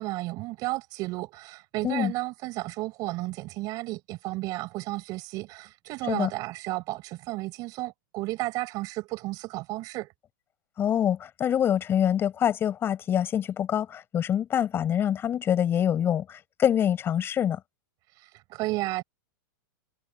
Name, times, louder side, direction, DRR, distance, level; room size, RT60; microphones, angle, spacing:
voice 1, 0.0-10.1 18.2-19.0, right 20 dB, 35° right, 7.9 m, -33 dB
voice 2, 10.8-17.6, left 9 dB, 20° left, 7.5 m, -25 dB
supercardioid pair, 155°, 11 cm